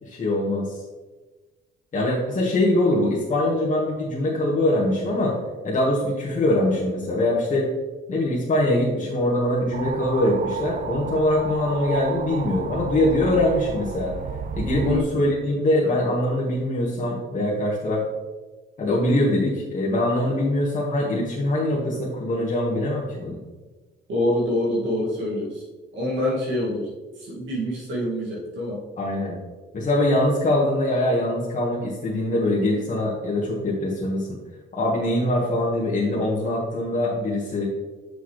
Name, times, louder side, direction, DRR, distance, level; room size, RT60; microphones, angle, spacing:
voice 1, 0.0-0.8 1.9-5.3 5.6-7.6 8.1-14.1 14.5-18.0 18.8-23.4 29.0-29.4 29.7-34.3 34.7-37.7, left 1 dB, 40° left, -5 dB, 1.5 m, -23 dB
sound 1, 9.7-15.0, right 6 dB, 45° right, 0.5 m, -33 dB
voice 2, 24.1-25.5 25.9-26.9 27.3-28.8, left 1 dB, 75° right, -6 dB, 2.2 m, -25 dB
6.8 x 6.4 x 3.2 m, 1.3 s
cardioid pair, 90°, 20 cm